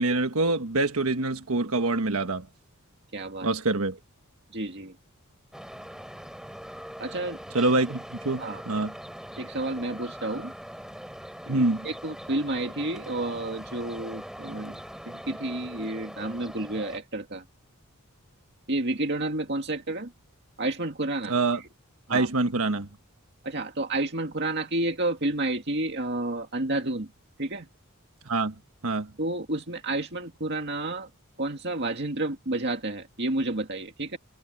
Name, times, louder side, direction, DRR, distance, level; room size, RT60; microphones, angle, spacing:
voice 1, 0.0-2.5 3.4-4.0 7.5-8.9 11.5-11.9 21.3-21.6 22.1-22.9 28.2-28.5 28.8-29.1, right 2 dB, 75° right, 1.4 m, -25 dB
voice 2, 3.1-3.5 4.5-5.0 7.0-7.4 8.4-8.6 9.4-10.5 11.5-17.4 18.7-20.1 20.6-21.3 22.1-22.3 23.4-27.1 27.4-27.7 29.2-31.1 31.4-34.2, right 2 dB, 50° right, 2.2 m, -30 dB
sound 1, 5.5-17.0, equal, ahead, 3.8 m, -42 dB
head